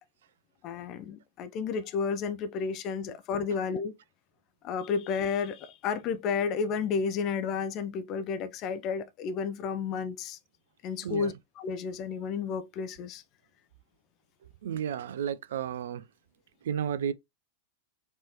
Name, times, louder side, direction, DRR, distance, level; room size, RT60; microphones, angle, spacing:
voice 1, 0.6-3.9 4.6-10.4 10.8-13.2, left 6 dB, 35° left, 0.5 m, -32 dB
voice 2, 14.6-16.1 16.6-17.1, right 8 dB, 60° right, 0.4 m, -32 dB
4.5 x 3.0 x 2.8 m
figure-of-eight pair, 90°, 0 cm